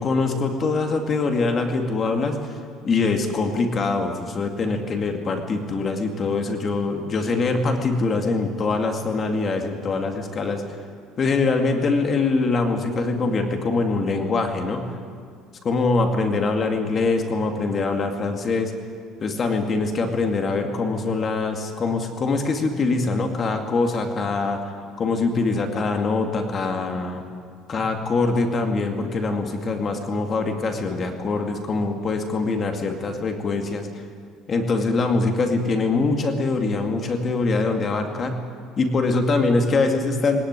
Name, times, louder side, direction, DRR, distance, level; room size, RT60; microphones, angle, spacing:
voice 1, 0.0-2.4 2.8-10.6 11.2-14.9 15.6-18.7 19.2-24.6 25.0-27.2 27.7-33.9 34.5-38.4 38.8-40.4, left 3 dB, 30° left, 4 dB, 2.3 m, -23 dB
19.5 x 18.5 x 9.7 m, 2.1 s
cardioid pair, 155°, 0 cm